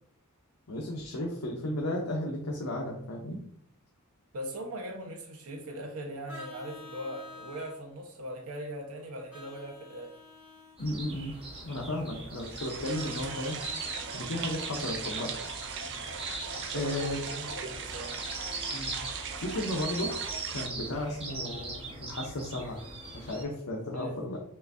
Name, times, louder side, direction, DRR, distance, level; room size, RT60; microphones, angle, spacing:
voice 1, 0.7-3.4 10.8-11.3 11.6-13.6 14.1-15.3 16.7-17.2 18.7-18.9 19.4-20.1 20.5-22.8 23.1-24.4, left 1 dB, 75° left, -1 dB, 0.7 m, -34 dB
voice 2, 4.3-10.1 11.8-12.2 15.9-16.0 16.7-18.2 23.9-24.2, right 1 dB, 80° right, 3 dB, 0.9 m, -40 dB
Vehicle horn car horn honking, 6.3-7.8 9.3-10.8 12.9-14.1, left 3 dB, 5° right, 1.2 m, -49 dB
sound 1, 10.8-23.4, right 2 dB, 25° right, 1.0 m, -40 dB
sound 2, 12.4-20.7, right 6 dB, 55° right, 0.4 m, -39 dB
5.6 x 2.5 x 2.6 m, 0.67 s
head